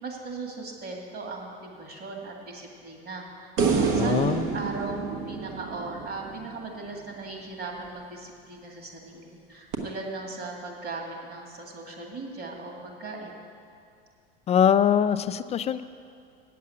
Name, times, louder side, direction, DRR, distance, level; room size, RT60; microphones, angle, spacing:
voice 1, 0.0-5.0 5.3-13.4, right 3 dB, 45° right, 0 dB, 2.2 m, -38 dB
sound 1, 3.6-6.9 9.7-9.8, right 5 dB, 70° right, 1.5 m, -27 dB
voice 2, 3.8-4.5 14.5-15.8, left 8 dB, 20° left, 12 dB, 0.3 m, -23 dB
8.3 x 7.7 x 8.4 m, 2.4 s
hypercardioid pair, 90°, 31 cm